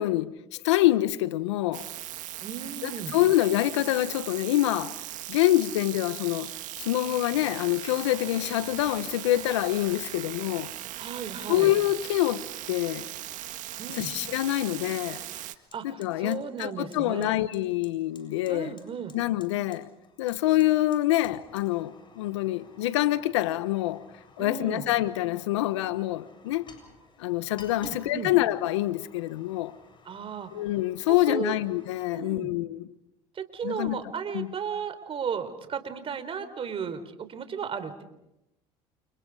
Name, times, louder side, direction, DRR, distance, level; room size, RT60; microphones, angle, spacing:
voice 1, 0.0-1.9 2.8-4.9 5.3-6.5 6.8-10.7 11.5-13.1 13.9-15.2 15.8-18.7 19.1-19.9 20.2-24.0 24.4-26.6 27.2-29.7 30.5-32.8 33.6-34.0 34.3-34.5, left 15 dB, 90° left, 1.2 m, -26 dB
sound 1, 1.7-15.6, right 14 dB, 60° right, 1.8 m, -39 dB
voice 2, 2.4-3.2 11.0-11.7 13.8-14.1 15.7-17.4 18.5-19.1 24.4-24.8 27.8-28.3 30.0-30.5 31.1-31.5 32.1-32.5 33.3-38.0, right 7 dB, 40° right, 4.0 m, -35 dB
Fire, 15.4-32.1, left 4 dB, 35° left, 7.7 m, -56 dB
30.0 x 29.5 x 5.0 m
supercardioid pair, 85°, 14 cm